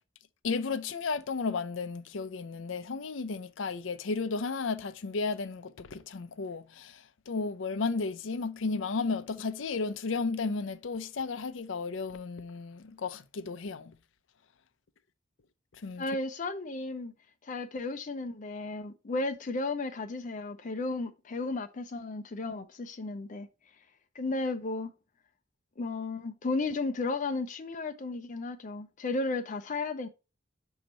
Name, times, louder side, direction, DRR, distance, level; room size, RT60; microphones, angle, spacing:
voice 1, 0.4-13.9 15.8-16.0, left 4 dB, 85° left, 0.6 m, -33 dB
voice 2, 16.0-17.1 17.4-23.5 24.1-24.9 25.8-30.1, left 3 dB, 40° left, 0.5 m, -34 dB
6.4 x 3.0 x 5.1 m
head